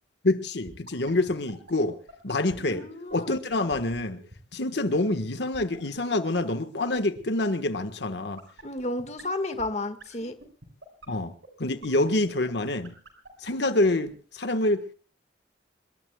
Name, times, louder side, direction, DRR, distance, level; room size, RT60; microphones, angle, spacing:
voice 1, 0.2-1.9 2.2-2.8 3.1-4.2 4.5-8.4 11.1-11.3 11.6-12.9 13.4-14.9, left 2 dB, 70° left, 9 dB, 1.4 m, -26 dB
sound 1, 0.7-14.1, right 2 dB, 80° right, 5.6 m, -46 dB
voice 2, 2.6-3.4 8.6-10.3, left 2 dB, 35° left, 9 dB, 1.7 m, -32 dB
26.5 x 22.0 x 2.3 m, 0.40 s
head